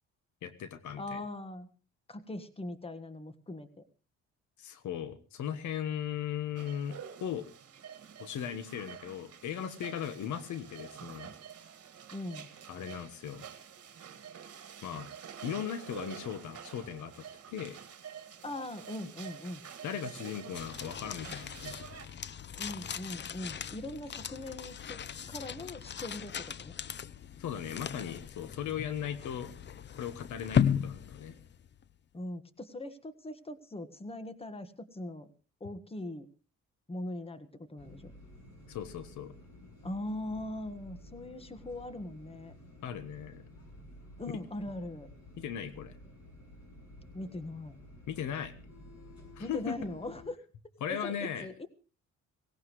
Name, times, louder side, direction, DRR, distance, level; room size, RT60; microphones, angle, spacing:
voice 1, 0.4-1.2 4.6-7.5 8.2-11.3 12.7-13.4 14.8-15.1 15.4-17.8 19.8-21.9 27.4-29.5 30.0-31.4 38.7-39.3 42.8-43.4 45.4-46.0 48.1-48.5 49.3-49.7 50.8-51.5, left 9 dB, 75° left, 13 dB, 1.3 m, -38 dB
voice 2, 1.0-1.7 2.1-3.8 12.1-12.5 18.4-19.6 22.6-25.0 25.3-26.7 32.1-35.3 35.6-36.3 36.9-38.1 39.8-42.5 44.2-45.1 47.1-47.8 49.4-50.4 50.9-51.7, left 1 dB, 20° left, 11 dB, 1.6 m, -40 dB
sound 1, 6.6-22.1, right 8 dB, 50° right, 2.1 m, -48 dB
sound 2, 20.5-31.9, left 8 dB, 35° left, 0.6 m, -36 dB
sound 3, 37.8-50.2, left 1 dB, 55° left, 7.3 m, -53 dB
18.0 x 17.5 x 3.2 m, 0.36 s
cardioid pair, 90°, 30 cm